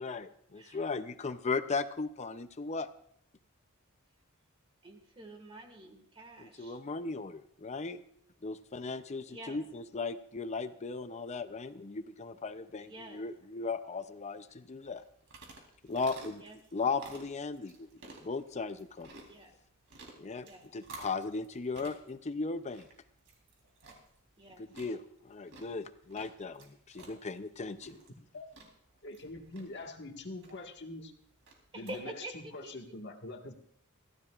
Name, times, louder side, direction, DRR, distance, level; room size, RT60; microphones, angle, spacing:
voice 1, 0.0-2.9 6.4-8.0 8.4-15.0 15.8-16.4 16.7-19.1 20.2-20.5 20.7-22.9 24.6-27.9, left 4 dB, 30° left, 10 dB, 0.6 m, -37 dB
voice 2, 4.8-6.8 9.3-9.6 12.8-13.3 16.4-16.6 19.3-19.5 20.4-20.7 24.4-24.7 31.7-32.7, right 1 dB, 25° right, 4 dB, 1.8 m, -47 dB
sound 1, 14.9-32.0, right 2 dB, 65° right, 3.8 m, -54 dB
voice 3, 27.8-28.5 29.0-31.1 31.7-33.5, left 2 dB, 55° left, 3 dB, 1.7 m, -44 dB
23.0 x 15.0 x 2.5 m, 0.66 s
head